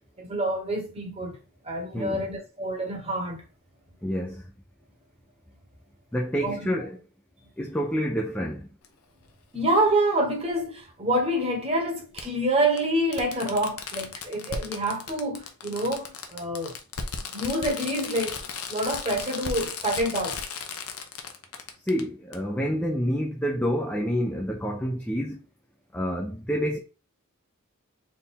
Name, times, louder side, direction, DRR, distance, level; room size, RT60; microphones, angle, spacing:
voice 1, 0.2-1.4 1.6-3.4 6.4-6.7 9.5-16.7 17.3-20.4, right 1 dB, 30° right, 1.2 m, -27 dB
voice 2, 1.9-2.3 4.0-4.4 6.1-7.0 7.6-8.7 21.9-25.4 25.9-26.8, equal, 5° left, 0.5 m, -28 dB
Fireworks, 8.8-8.9 10.5-10.6 12.2-12.3 12.8-12.9 13.1-22.0 22.3-22.4, left 5 dB, 85° left, 0.8 m, -35 dB
3.6 x 2.7 x 4.3 m
head